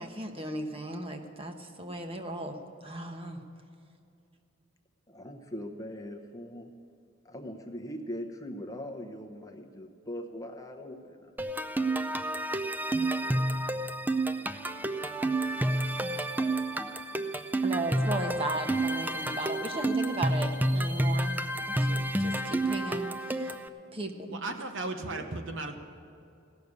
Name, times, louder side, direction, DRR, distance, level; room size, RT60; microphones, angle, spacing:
voice 1, 0.0-2.6 2.8-3.4 17.6-21.4 21.7-23.5 23.9-24.4, right 1 dB, 30° right, 5 dB, 1.1 m, -36 dB
voice 2, 5.1-6.7 7.2-11.3 16.8-17.0 17.2-17.3 18.2-18.3 24.5-24.6 25.1-25.3, equal, 15° left, 4 dB, 0.9 m, -41 dB
sound 1, 11.4-23.7, right 1 dB, 10° right, 0.4 m, -30 dB
voice 3, 24.3-25.8, right 2 dB, 65° right, 6 dB, 1.0 m, -36 dB
16.5 x 6.7 x 9.6 m, 2.5 s
head